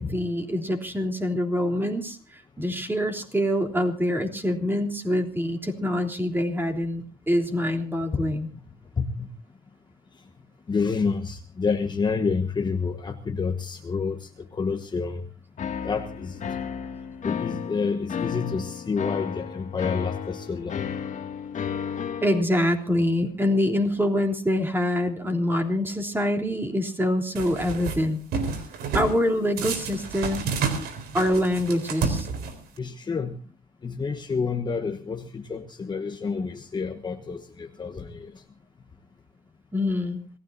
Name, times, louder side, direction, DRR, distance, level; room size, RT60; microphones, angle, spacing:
voice 1, 0.0-8.5 22.2-28.2 28.9-30.5 31.1-32.3 39.7-40.2, left 1 dB, 10° right, 3 dB, 3.4 m, -25 dB
voice 2, 9.0-9.3 10.7-15.2 15.8-16.5 17.2-21.1 32.8-33.4 33.8-38.4, left 5 dB, 25° left, 6 dB, 1.3 m, -29 dB
sound 1, 15.6-22.4, left 7 dB, 45° left, 2.0 m, -33 dB
sound 2, 27.4-28.0 28.3-29.2 29.6-32.8, right 5 dB, 75° right, 3.8 m, -29 dB
27.0 x 16.5 x 2.6 m, 0.34 s
cardioid pair, 110°, 17 cm